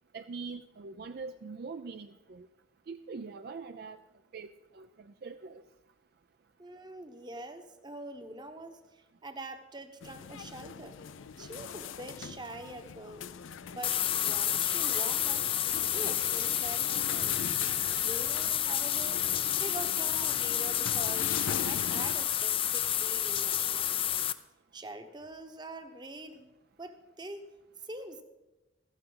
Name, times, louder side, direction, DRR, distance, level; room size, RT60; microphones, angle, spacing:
voice 1, 0.1-2.5 2.9-4.0 4.3-5.6, right 4 dB, 50° right, 9 dB, 0.4 m, -43 dB
voice 2, 6.6-11.0 11.4-13.3 13.7-15.5 15.7-17.5 18.0-19.2 19.5-24.0 24.7-26.5 26.8-27.4 27.8-28.2, right 2 dB, 25° right, 8 dB, 0.9 m, -44 dB
sound 1, 10.0-22.2, left 7 dB, 90° left, 0.5 m, -41 dB
sound 2, 13.8-24.3, left 11 dB, 30° left, 0.4 m, -30 dB
15.0 x 13.5 x 3.9 m, 1.0 s
head